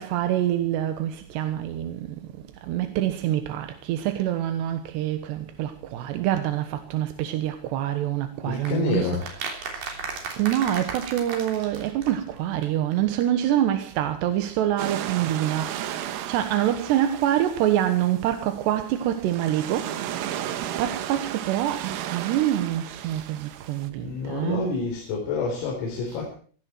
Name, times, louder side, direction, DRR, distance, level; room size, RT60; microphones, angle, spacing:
voice 1, 0.0-2.2 2.6-9.2 10.4-20.0 20.8-24.7, right 12 dB, 70° right, 2.9 m, -26 dB
voice 2, 8.4-9.3 24.0-26.3, left 4 dB, 80° left, 6.6 m, -28 dB
sound 1, 8.7-12.4 12.6-12.7 12.9-13.0 13.2-13.3, right 5 dB, 50° right, 4.9 m, -35 dB
sound 2, 14.8-23.9, right 11 dB, 90° right, 4.1 m, -34 dB
17.0 x 17.0 x 4.5 m
omnidirectional pair, 5.9 m